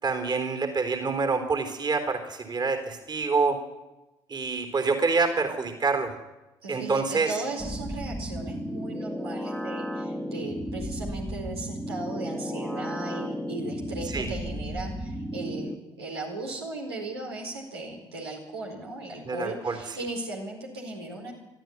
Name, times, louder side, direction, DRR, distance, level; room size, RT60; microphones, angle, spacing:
voice 1, 0.0-3.6 4.3-6.2 6.7-7.3 14.1-14.3 19.2-20.0, right 4 dB, 35° right, 6 dB, 3.8 m, -27 dB
voice 2, 6.6-21.3, right 2 dB, 80° right, -1 dB, 4.6 m, -37 dB
sound 1, 7.6-15.8, equal, ahead, 2.1 m, -34 dB
22.5 x 13.5 x 9.6 m, 1.0 s
figure-of-eight pair, 55°, 13 cm